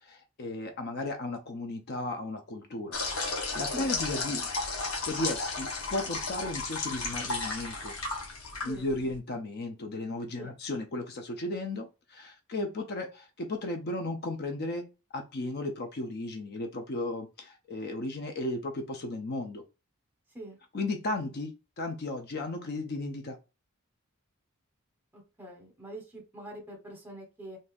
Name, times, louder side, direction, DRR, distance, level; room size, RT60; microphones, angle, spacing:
voice 1, 0.0-3.0 3.5-4.4 5.0-7.9 8.6-19.6 20.7-23.4, left 2 dB, 50° left, 5 dB, 0.5 m, -35 dB
sound 1, 2.9-9.2, left 3 dB, 75° left, 1.0 m, -34 dB
voice 2, 8.5-9.2 10.3-10.5 20.3-20.6 25.1-27.6, right 1 dB, 10° right, 1 dB, 1.0 m, -45 dB
3.6 x 2.7 x 2.5 m, 0.29 s
head